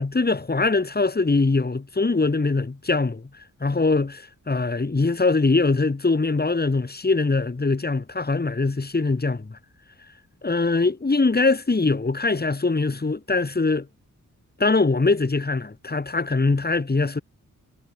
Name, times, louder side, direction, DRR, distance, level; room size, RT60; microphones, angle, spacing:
voice 1, 0.0-3.3 3.6-9.6 10.4-13.9 14.6-17.2, left 3 dB, 30° left, 3.7 m, -22 dB
wide cardioid pair, 85°, 32 cm